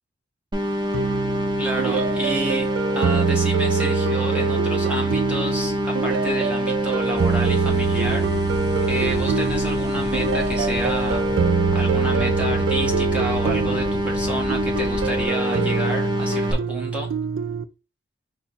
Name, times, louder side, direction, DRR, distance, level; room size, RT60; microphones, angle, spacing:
sound 1, 0.5-16.5, equal, 25° right, 0.5 m, -25 dB
sound 2, 0.9-17.6, right 6 dB, 85° right, 0.4 m, -25 dB
voice 1, 1.6-8.3 8.8-11.3 11.7-17.1, right 2 dB, 5° right, 1.0 m, -30 dB
sound 3, 7.1-15.3, left 4 dB, 50° left, 0.3 m, -34 dB
3.9 x 2.1 x 4.1 m
head